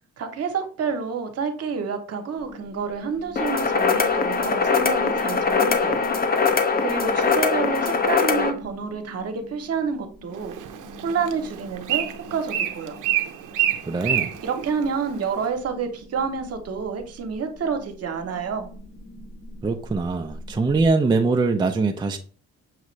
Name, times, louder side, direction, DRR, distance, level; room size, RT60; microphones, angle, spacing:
voice 1, 0.2-6.0 6.3-10.5 11.0-13.0 14.4-18.7, right 6 dB, 55° right, 6 dB, 0.9 m, -29 dB
sound 1, 2.3-20.9, left 2 dB, 80° left, 2.0 m, -45 dB
sound 2, 3.4-8.5, left 5 dB, 30° left, 0.6 m, -22 dB
Bird, 10.3-15.5, right 11 dB, 85° right, 0.6 m, -28 dB
voice 2, 13.9-14.3 19.6-22.2, right 3 dB, 15° right, 4 dB, 0.4 m, -22 dB
6.5 x 2.5 x 3.1 m, 0.41 s
cardioid pair, 90°, 30 cm